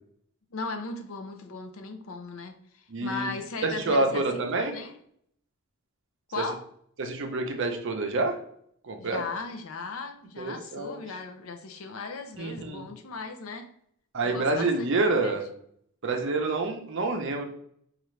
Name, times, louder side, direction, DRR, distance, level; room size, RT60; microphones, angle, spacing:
voice 1, 0.5-4.9 6.3-6.6 9.0-13.7 14.2-15.4, left 4 dB, 65° left, 0.5 m, -37 dB
voice 2, 2.9-3.3 3.6-4.8 7.0-8.4 8.8-9.2 10.4-11.0 12.4-12.9 14.1-15.4 16.0-17.4, right 3 dB, 55° right, 0.6 m, -27 dB
4.7 x 2.4 x 3.1 m
head